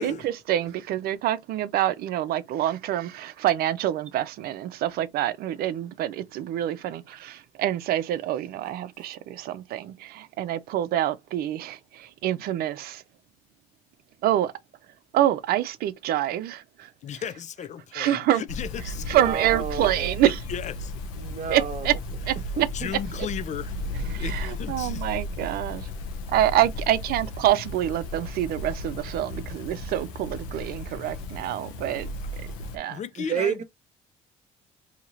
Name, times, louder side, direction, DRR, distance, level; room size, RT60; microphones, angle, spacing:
voice 1, 0.0-13.0 14.2-14.5 15.1-16.9 17.9-18.4 19.1-20.4 21.5-21.9 22.3-22.4 24.1-25.9 26.3-32.1 32.7-33.0, right 12 dB, 70° right, 0.5 m, -26 dB
voice 2, 17.0-19.3 19.8-19.9 20.5-20.9 22.7-23.8 24.2-25.2 32.9-33.6, left 8 dB, 45° left, 0.6 m, -35 dB
sound 1, 18.5-32.8, left 1 dB, 85° left, 0.8 m, -35 dB
voice 3, 19.0-20.1 21.2-21.9 22.6-22.9 33.2-33.6, right 7 dB, 45° right, 1.0 m, -30 dB
2.9 x 2.9 x 3.8 m
supercardioid pair, 70°, 17 cm